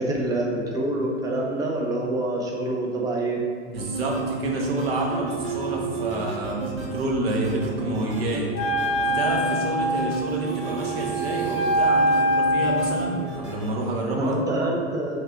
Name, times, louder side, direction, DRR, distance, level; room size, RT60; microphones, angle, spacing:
voice 1, 0.0-3.4 14.2-15.2, right 1 dB, 10° right, -1 dB, 0.5 m, -26 dB
voice 2, 3.7-8.5 9.0-14.4, right 2 dB, 55° right, -1 dB, 1.0 m, -28 dB
sound 1, 3.8-13.8, right 4 dB, 35° right, 1.2 m, -31 dB
Wind instrument woodwind instrument, 8.5-13.1, equal, 35° left, 0.7 m, -24 dB
3.4 x 3.2 x 4.8 m, 2.1 s
figure-of-eight pair, 90°, 35 cm